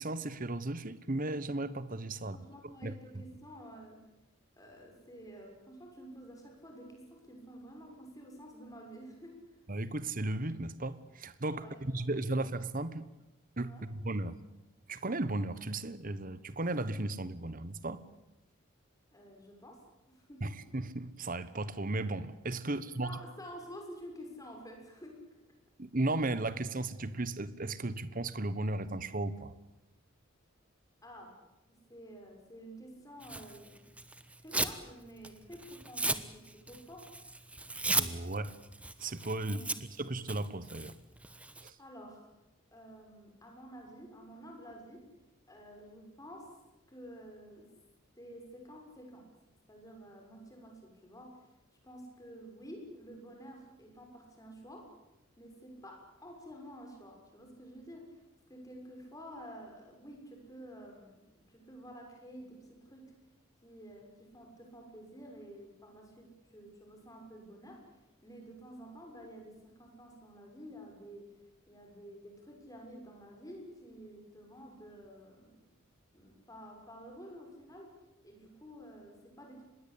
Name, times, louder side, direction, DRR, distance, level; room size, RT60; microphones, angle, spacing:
voice 1, 0.0-2.4 2.8-2.9 9.7-13.1 13.6-14.3 14.9-18.0 20.4-23.1 25.8-29.5 37.9-38.5 39.0-39.6 40.0-40.9 41.6-41.7, right 2 dB, 40° right, 1.2 m, -35 dB
voice 2, 2.3-4.0 4.6-9.3 11.5-12.4 13.7-13.9 19.1-20.6 22.6-25.2 31.0-31.3 31.7-33.9 34.4-37.1 39.4-39.8 41.8-42.3 42.7-45.1 45.5-46.5 46.9-47.7 48.2-49.3 49.7-51.4 51.8-54.9 55.4-58.2 58.5-61.2 61.5-63.1 63.6-67.8 68.2-71.3 71.7-75.6 76.1-77.9 78.2-79.6, equal, 15° left, 6.5 m, -50 dB
Tearing, 33.2-34.8 35.2-41.7, right 2 dB, 5° right, 1.1 m, -36 dB
25.5 x 21.0 x 8.6 m
head